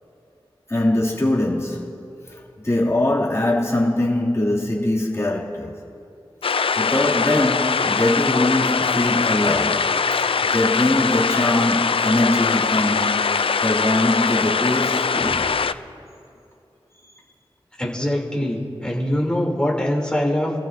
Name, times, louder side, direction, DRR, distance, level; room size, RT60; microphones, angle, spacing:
voice 1, 0.7-2.0 2.6-5.7 6.8-9.9 10.5-13.2 13.6-15.5, left 1 dB, 30° left, 2.5 m, -22 dB
sound 1, 6.4-15.7, left 5 dB, 70° left, 0.4 m, -22 dB
voice 2, 17.8-20.5, left 1 dB, 10° left, 3.0 m, -23 dB
27.0 x 15.0 x 2.7 m
wide cardioid pair, 60°, 10 cm